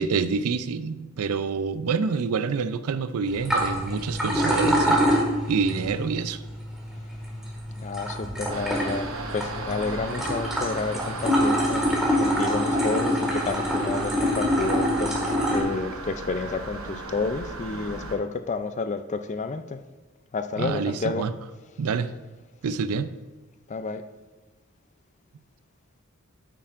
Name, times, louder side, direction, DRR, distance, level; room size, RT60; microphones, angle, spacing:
voice 1, 0.0-5.1 5.5-6.4 20.6-21.3 21.8-22.1 22.6-23.1, right 5 dB, 85° right, 13 dB, 0.4 m, -27 dB
sound 1, 3.3-15.6, equal, ahead, 1.8 m, -26 dB
voice 2, 7.8-11.9 12.2-19.8 20.3-21.3 23.7-24.0, left 4 dB, 35° left, 10 dB, 0.4 m, -30 dB
sound 2, 8.5-18.2, right 3 dB, 65° right, 1.1 m, -36 dB
9.0 x 8.6 x 2.5 m, 1.3 s
head